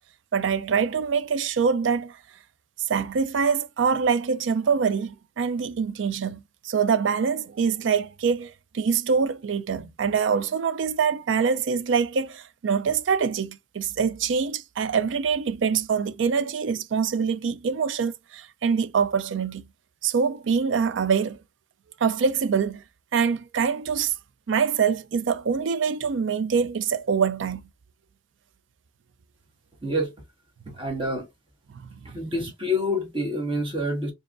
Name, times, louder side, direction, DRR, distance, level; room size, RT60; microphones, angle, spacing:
voice 1, 0.3-2.2 2.9-19.7 20.0-21.4 22.0-22.8 23.1-24.1 24.5-27.6 31.8-32.2, right 6 dB, 75° right, 0.4 m, -24 dB
voice 2, 29.8-30.1 30.6-31.3 32.0-34.1, left 1 dB, 25° right, 1.6 m, -27 dB
4.6 x 2.8 x 2.5 m
head